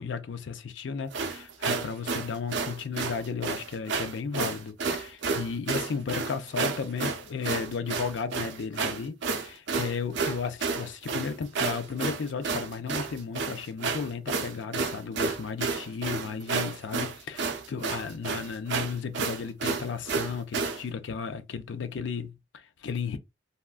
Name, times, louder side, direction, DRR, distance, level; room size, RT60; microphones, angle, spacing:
voice 1, 0.0-23.2, left 5 dB, 75° left, 0.4 m, -34 dB
sound 1, 1.1-20.8, right 4 dB, 70° right, 0.6 m, -31 dB
3.5 x 2.2 x 2.4 m
head